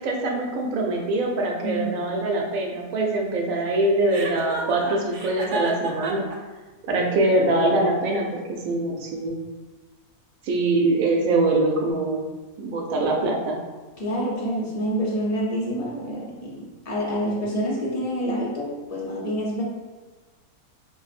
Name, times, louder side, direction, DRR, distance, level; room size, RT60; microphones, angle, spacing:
voice 1, 0.0-6.3 6.8-9.4 10.4-12.2 12.6-13.6, right 2 dB, 75° right, 1 dB, 1.0 m, -23 dB
Chuckle chortle, 4.1-6.4, right 2 dB, 90° right, 0.4 m, -31 dB
voice 2, 14.0-19.6, equal, 55° left, -4 dB, 0.4 m, -27 dB
5.3 x 2.0 x 2.4 m, 1.3 s
omnidirectional pair, 1.5 m